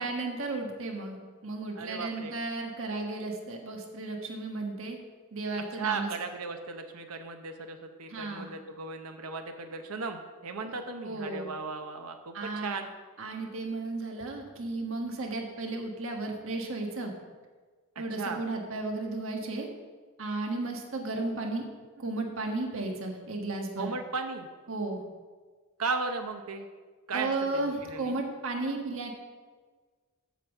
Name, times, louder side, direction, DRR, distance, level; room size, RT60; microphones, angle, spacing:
voice 1, 0.0-5.0 5.3-6.1 8.1-8.6 10.6-10.8 11.0-11.5 12.3-12.8 13.2-17.1 18.0-19.7 20.2-21.7 22.0-23.9 24.7-25.0 27.1-29.1, right 2 dB, 60° right, 2 dB, 1.5 m, -34 dB
voice 2, 1.8-2.3 5.7-12.9 18.2-18.4 23.8-24.5 25.8-26.7 27.1-28.2, right 4 dB, 80° right, 5 dB, 0.9 m, -36 dB
8.3 x 6.0 x 7.2 m, 1.4 s
head